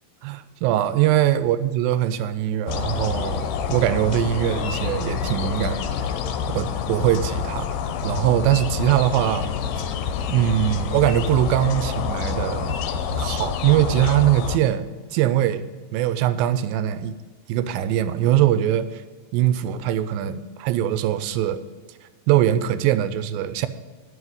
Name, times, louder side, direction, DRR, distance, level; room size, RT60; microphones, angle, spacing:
voice 1, 0.2-5.8 6.5-7.7 8.0-9.5 10.3-12.8 13.1-17.2 17.5-19.0 19.3-21.6 22.3-23.7, right 12 dB, 85° right, 13 dB, 2.3 m, -22 dB
sound 1, 2.7-14.6, left 7 dB, 80° left, 2.1 m, -27 dB
9.5 x 5.6 x 7.9 m, 1.5 s
omnidirectional pair, 4.1 m